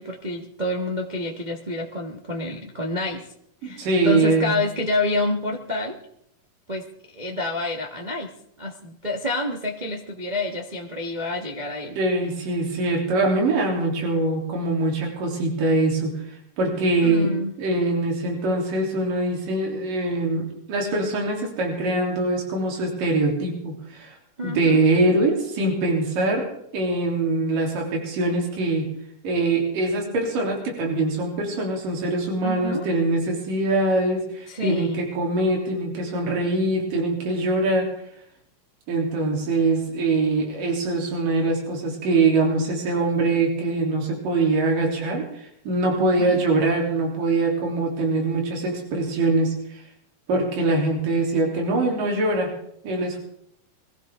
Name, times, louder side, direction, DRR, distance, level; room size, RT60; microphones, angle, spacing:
voice 1, 0.0-3.3 3.6-6.0 6.7-8.3 8.6-11.9 17.0-17.5 24.4-24.8 32.4-32.9 34.5-35.0 46.0-46.4, left 2 dB, 80° right, 0 dB, 0.4 m, -28 dB
voice 2, 3.6-4.5 11.9-16.1 16.6-17.3 17.6-24.2 24.4-26.5 26.7-28.9 29.2-37.9 38.9-49.8 50.3-52.5 52.8-53.2, right 2 dB, 65° right, -1 dB, 5.0 m, -23 dB
23.0 x 16.5 x 3.8 m, 0.72 s
omnidirectional pair, 4.2 m